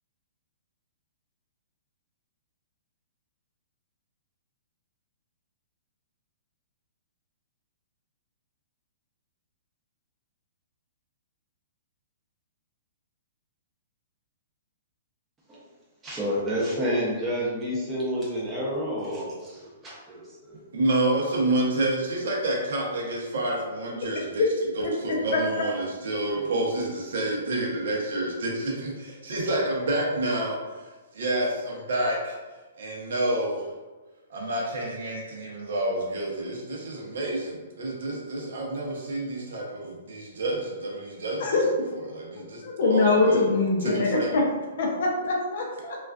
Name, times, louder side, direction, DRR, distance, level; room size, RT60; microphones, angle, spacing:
voice 1, 16.0-20.6, equal, 10° right, -7 dB, 0.6 m, -29 dB
voice 2, 20.7-24.4 24.7-30.6 31.1-32.4 32.8-33.7 34.3-41.5 41.9-43.5 43.8-44.4, right 1 dB, 70° right, -2 dB, 0.7 m, -28 dB
voice 3, 42.6-44.4 44.8-46.0, left 3 dB, 50° left, 0 dB, 0.5 m, -23 dB
2.3 x 2.3 x 2.3 m, 1.3 s
hypercardioid pair, 170°, 0 cm